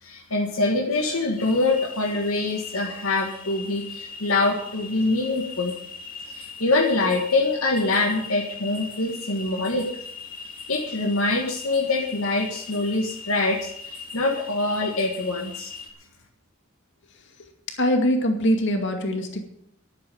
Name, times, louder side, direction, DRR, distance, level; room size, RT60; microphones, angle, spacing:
voice 1, 0.0-5.7 6.3-9.9 10.7-15.7, left 2 dB, 75° left, 1 dB, 1.9 m, -24 dB
sound 1, 1.4-15.9, left 5 dB, 45° left, 2.1 m, -40 dB
voice 2, 17.8-19.4, equal, 60° left, 4 dB, 2.3 m, -22 dB
11.0 x 9.4 x 8.7 m, 0.73 s
head